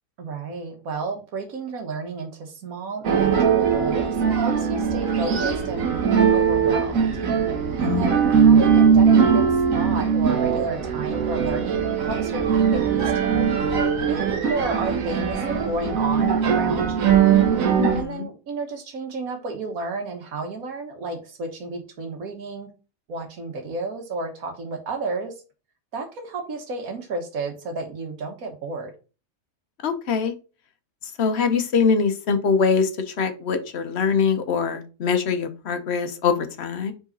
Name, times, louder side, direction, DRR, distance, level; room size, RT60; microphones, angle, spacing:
voice 1, 0.2-7.1 7.8-9.5 9.7-13.7 14.1-17.3 17.9-22.7 23.1-25.3 25.9-28.9, right 3 dB, 90° right, 1.6 m, -32 dB
sound 1, 3.0-18.0, right 6 dB, 70° right, 1.5 m, -20 dB
voice 2, 7.8-8.1 17.8-18.3 29.8-30.3 31.0-36.9, left 5 dB, 55° left, 1.0 m, -23 dB
4.9 x 3.9 x 5.1 m
omnidirectional pair, 1.4 m